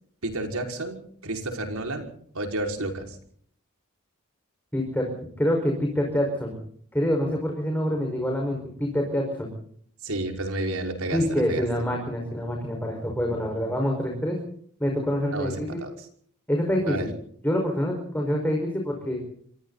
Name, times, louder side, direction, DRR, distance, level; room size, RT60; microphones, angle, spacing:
voice 1, 0.2-2.1 2.3-3.2 10.0-11.7 15.3-15.5 15.8-15.9 16.9-17.1, right 2 dB, 80° right, 3 dB, 5.5 m, -30 dB
voice 2, 4.7-6.6 6.9-9.5 11.1-14.4 14.8-15.8 16.5-17.1 17.4-19.2, equal, 10° left, 1 dB, 5.3 m, -26 dB
28.5 x 23.5 x 4.2 m, 0.62 s
head